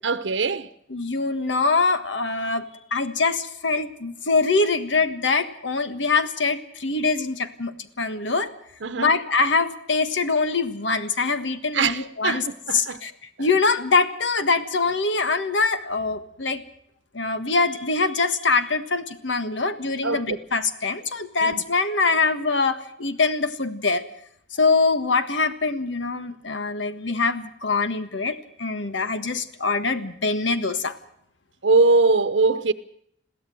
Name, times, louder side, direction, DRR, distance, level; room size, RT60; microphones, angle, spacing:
voice 1, 0.0-0.7 8.8-9.2 11.7-13.0 13.4-13.5 20.0-20.4 21.4-21.6 31.6-32.7, right 3 dB, 85° right, 0.9 m, -22 dB
voice 2, 0.9-2.6 2.9-8.5 9.0-12.4 12.7-13.1 13.4-16.6 17.1-24.0 24.5-30.9, left 4 dB, 85° left, 1.5 m, -23 dB
22.0 x 15.5 x 7.8 m
head